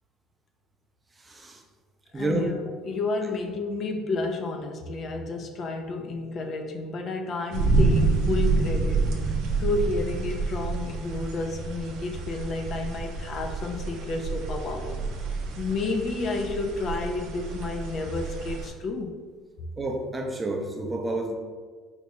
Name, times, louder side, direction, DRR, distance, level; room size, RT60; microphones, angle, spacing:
voice 1, 1.2-1.6 2.1-2.5 19.8-21.3, right 2 dB, 20° right, 3 dB, 0.5 m, -29 dB
voice 2, 2.1-9.1 9.6-15.0 15.6-19.2, left 3 dB, 50° left, 3 dB, 0.4 m, -31 dB
sound 1, 7.5-18.7, right 3 dB, 70° right, 0.5 m, -28 dB
4.2 x 2.2 x 2.9 m, 1.5 s
supercardioid pair, 85°, 0 cm